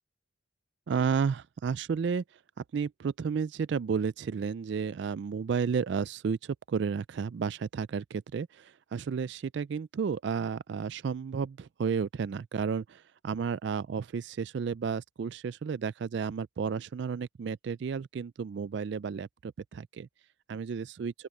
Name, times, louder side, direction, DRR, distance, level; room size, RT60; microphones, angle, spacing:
voice 1, 0.9-2.2 2.6-20.1 20.5-21.1, right 6 dB, 55° right, 0.3 m, -32 dB
open air
head